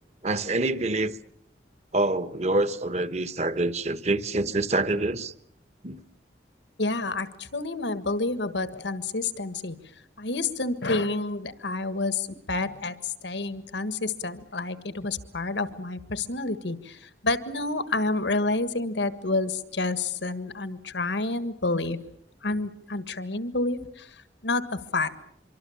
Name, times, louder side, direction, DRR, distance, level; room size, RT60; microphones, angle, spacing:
voice 1, 0.2-1.2 1.9-5.3 5.8-6.0, right 2 dB, 40° right, 1.1 m, -26 dB
voice 2, 6.8-9.8 10.2-22.0 22.4-25.1, left 3 dB, 85° left, 1.6 m, -29 dB
25.0 x 25.0 x 7.2 m
head